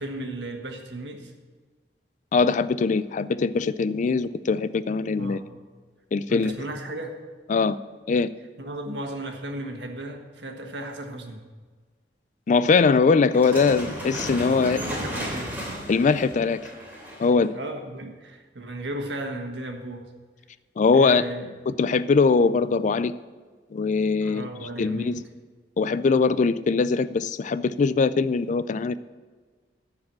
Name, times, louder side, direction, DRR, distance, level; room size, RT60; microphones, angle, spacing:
voice 1, 0.0-1.3 5.2-5.4 6.3-7.1 8.6-11.4 14.6-15.6 17.5-20.1 20.9-21.5 24.2-25.2, right 1 dB, 80° right, 3 dB, 1.5 m, -35 dB
voice 2, 2.3-5.4 6.1-6.5 7.5-7.8 8.1-8.3 12.5-14.8 15.9-16.6 17.2-17.5 20.8-21.3 21.7-23.2 23.7-24.5 24.8-25.2 25.8-29.0, left 4 dB, 45° left, 15 dB, 0.4 m, -21 dB
sound 1, 13.3-17.4, equal, 10° right, 3.0 m, -34 dB
14.0 x 4.9 x 7.5 m, 1.4 s
head